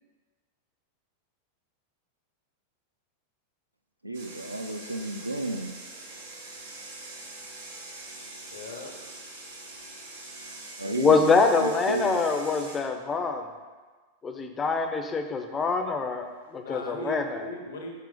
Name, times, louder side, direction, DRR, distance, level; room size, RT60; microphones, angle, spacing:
voice 1, 4.0-5.7 10.8-12.2, right 2 dB, 85° right, 5 dB, 0.3 m, -32 dB
sound 1, 4.1-12.8, right 2 dB, 65° right, 0.9 m, -43 dB
voice 2, 8.5-8.9 16.5-17.9, left 1 dB, 65° left, 2 dB, 0.6 m, -38 dB
voice 3, 11.0-13.4 14.2-17.5, left 4 dB, 20° left, 6 dB, 0.4 m, -25 dB
4.5 x 3.0 x 3.7 m, 1.4 s
figure-of-eight pair, 90°, 0 cm